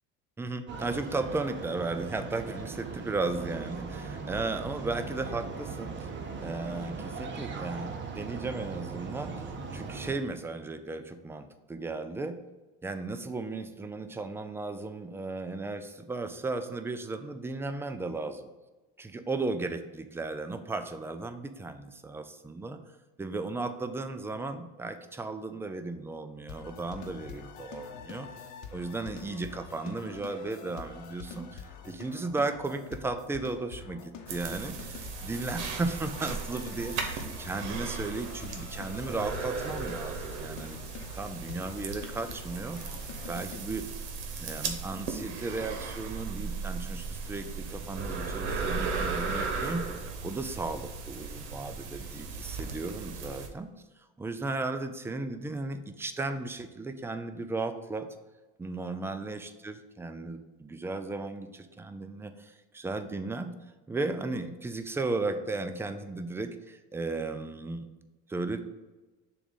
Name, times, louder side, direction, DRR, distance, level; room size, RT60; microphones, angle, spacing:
voice 1, 0.4-6.1 6.4-9.4 9.7-12.4 12.8-18.5 19.0-22.8 23.2-28.3 28.7-40.9 41.1-42.8 43.3-43.9 44.4-49.9 50.2-53.7 54.0-58.1 58.6-63.5 63.9-67.9 68.3-68.6, right 3 dB, 10° right, 9 dB, 0.4 m, -35 dB
sound 1, 0.7-10.2, right 4 dB, 35° right, 0.8 m, -39 dB
sound 2, 26.5-43.6, left 6 dB, 60° left, 0.9 m, -46 dB
sound 3, 34.3-53.5, right 4 dB, 80° right, 1.0 m, -36 dB
6.8 x 2.5 x 5.5 m, 1.2 s
supercardioid pair, 90°, 33 cm